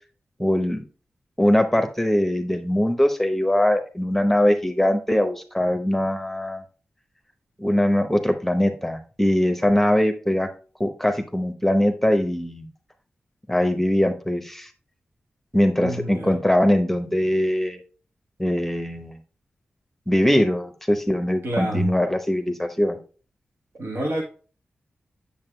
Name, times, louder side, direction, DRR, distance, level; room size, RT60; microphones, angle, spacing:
voice 1, 0.4-0.8 1.4-6.6 7.6-10.5 10.8-12.7 13.5-14.7 15.5-17.8 18.4-19.2 20.1-23.0, left 1 dB, 5° left, 6 dB, 1.0 m, -21 dB
voice 2, 15.8-16.4 21.4-21.9 23.7-24.2, right 1 dB, 75° right, 0 dB, 1.2 m, -28 dB
7.4 x 6.9 x 2.2 m, 0.37 s
cardioid pair, 45°, 4 cm